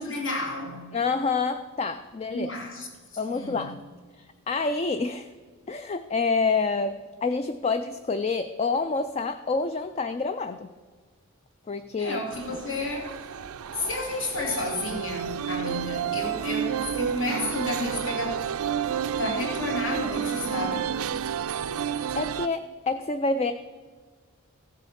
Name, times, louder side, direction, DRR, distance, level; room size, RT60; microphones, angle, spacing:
voice 1, 0.0-0.9 2.3-3.7 12.0-13.3 13.7-18.5 19.2-20.9, left 2 dB, 60° left, 2.5 m, -31 dB
voice 2, 0.9-2.5 3.2-3.8 4.2-5.3 5.7-10.7 11.7-12.2 12.5-12.6 22.1-23.5, left 4 dB, 30° left, 0.3 m, -27 dB
sound 1, 12.3-22.5, right 8 dB, 85° right, 0.4 m, -30 dB
15.0 x 7.1 x 5.7 m
head